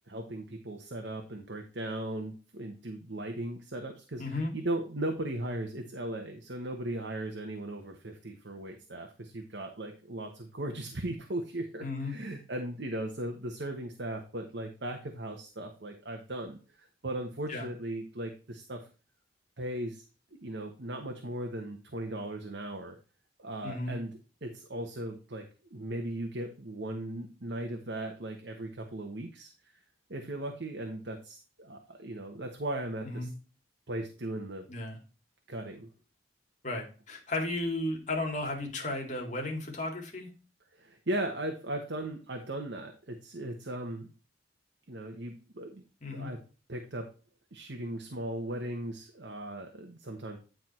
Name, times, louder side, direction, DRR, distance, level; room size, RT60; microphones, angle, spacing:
voice 1, 0.1-18.9 19.6-20.0 20.4-23.0 23.4-25.4 25.7-29.5 30.1-33.3 33.9-34.7 35.5-35.9 40.7-44.1 44.9-45.8 46.1-46.4 46.7-47.1 47.5-50.4, right 1 dB, 65° right, 4 dB, 1.2 m, -37 dB
voice 2, 4.2-4.5 11.8-12.1 17.5-17.7 23.6-24.0 33.0-33.3 34.7-35.0 36.6-40.3 46.0-46.3, left 2 dB, 40° left, 2 dB, 2.5 m, -34 dB
10.0 x 4.6 x 4.3 m, 0.34 s
head